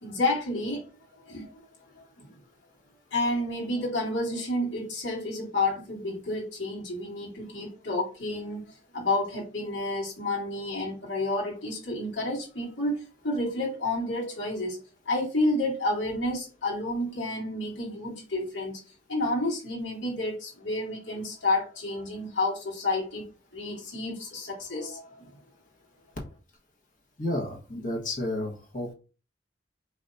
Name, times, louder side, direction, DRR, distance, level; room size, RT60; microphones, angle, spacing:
voice 1, 0.0-0.9 1.2-1.6 2.0-2.4 3.1-14.8 15.1-18.8 19.1-23.2 23.5-25.3, left 2 dB, 80° left, -3 dB, 2.3 m, -30 dB
voice 2, 27.2-28.9, left 1 dB, 45° left, -1 dB, 1.3 m, -31 dB
5.0 x 3.4 x 2.6 m, 0.33 s
head